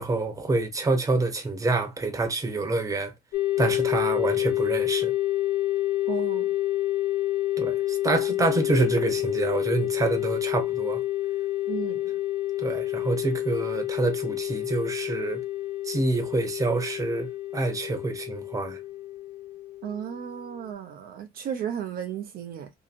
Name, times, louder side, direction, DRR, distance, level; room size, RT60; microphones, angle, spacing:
voice 1, 0.0-3.1 3.6-5.1 7.6-11.0 12.6-15.4 15.8-18.8, right 3 dB, 20° right, 0.8 m, -27 dB
sound 1, 3.3-20.7, left 15 dB, 60° left, 0.6 m, -28 dB
voice 2, 6.1-6.5 11.7-12.1 19.8-22.7, right 9 dB, 60° right, 0.5 m, -34 dB
2.7 x 2.6 x 2.5 m
cardioid pair, 110°, 17 cm